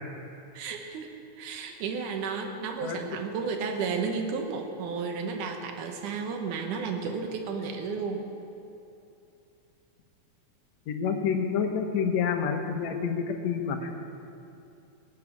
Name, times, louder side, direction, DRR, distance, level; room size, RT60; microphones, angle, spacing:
voice 1, 0.5-1.1 1.4-8.3, right 5 dB, 85° right, 4 dB, 2.6 m, -32 dB
voice 2, 10.9-13.9, left 6 dB, 65° left, 4 dB, 2.3 m, -28 dB
17.0 x 8.3 x 8.5 m, 2.7 s
omnidirectional pair, 3.5 m